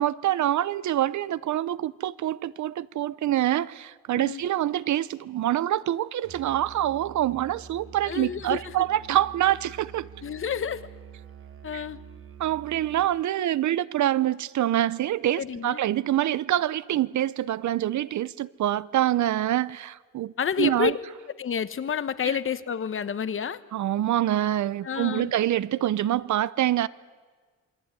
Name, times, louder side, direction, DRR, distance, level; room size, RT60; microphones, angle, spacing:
voice 1, 0.0-10.1 11.7-11.8 12.4-20.9 23.7-26.9, right 13 dB, 75° right, 0.8 m, -26 dB
Musical instrument, 6.2-13.3, right 7 dB, 45° right, 1.4 m, -46 dB
voice 2, 8.0-8.9 10.2-10.9 11.6-12.0 15.4-15.8 20.4-21.0 21.4-23.6 24.8-25.3, left 7 dB, 45° left, 1.1 m, -29 dB
27.5 x 22.0 x 9.6 m
wide cardioid pair, 145°, 30 cm